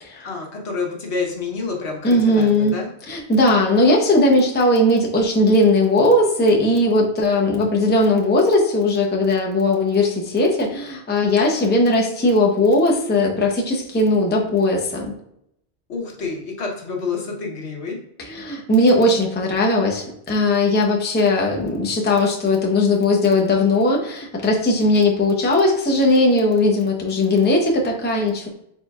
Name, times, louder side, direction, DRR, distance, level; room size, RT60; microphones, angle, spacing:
voice 1, 0.2-2.9 15.9-18.0, left 4 dB, 80° left, 0 dB, 1.2 m, -28 dB
voice 2, 2.0-2.8 3.1-15.1 18.2-28.5, left 2 dB, 15° left, -1 dB, 0.5 m, -18 dB
4.4 x 4.0 x 2.3 m, 0.76 s
omnidirectional pair, 1.1 m